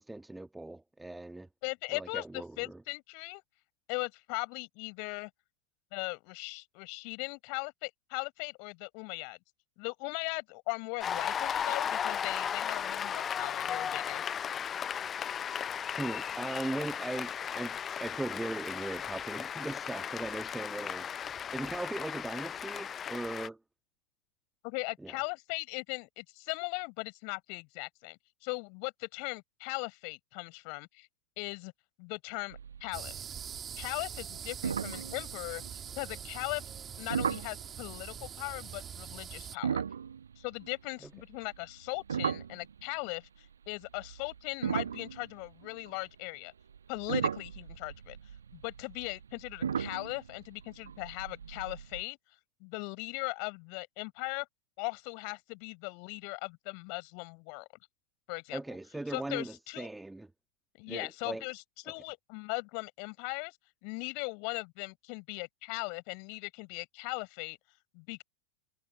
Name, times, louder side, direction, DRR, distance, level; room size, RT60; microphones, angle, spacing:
voice 1, 0.0-1.5 1.9-2.8 16.0-21.2 21.5-23.6 25.0-25.2 58.5-60.3 60.9-61.4, right 2 dB, 5° right, 1.5 m, -39 dB
voice 2, 1.6-3.4 3.9-5.3 5.9-9.4 9.8-14.2 24.6-31.1 31.4-31.7 32.0-33.2 33.8-35.6 36.0-36.6 37.0-39.8 40.4-46.5 46.9-48.2 48.5-52.2 52.6-54.5 54.8-57.7 58.3-58.6 59.1-59.9 60.8-63.6 63.8-67.6 67.9-68.2, left 40 dB or more, 45° left, 6.6 m, -39 dB
Cheering / Applause, 11.0-23.5, left 8 dB, 25° left, 0.5 m, -36 dB
sound 1, 32.5-33.2 33.4-33.8 34.2-34.3 34.6-35.9 37.1-37.6 39.5-43.1 43.9-46.1 46.7-52.0, right 7 dB, 70° right, 1.0 m, -36 dB
sound 2, 32.9-39.6, right 8 dB, 25° right, 2.3 m, -43 dB
figure-of-eight pair, 90°, 0 cm